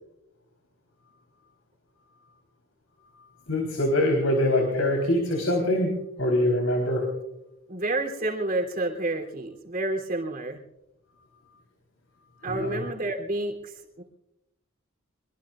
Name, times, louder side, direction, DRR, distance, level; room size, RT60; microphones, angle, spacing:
voice 1, 3.5-7.0 12.3-12.8, left 1 dB, 90° left, 1 dB, 3.9 m, -24 dB
voice 2, 7.7-10.6 12.4-14.0, right 2 dB, 45° right, 1 dB, 3.3 m, -29 dB
25.5 x 22.5 x 2.5 m, 0.87 s
head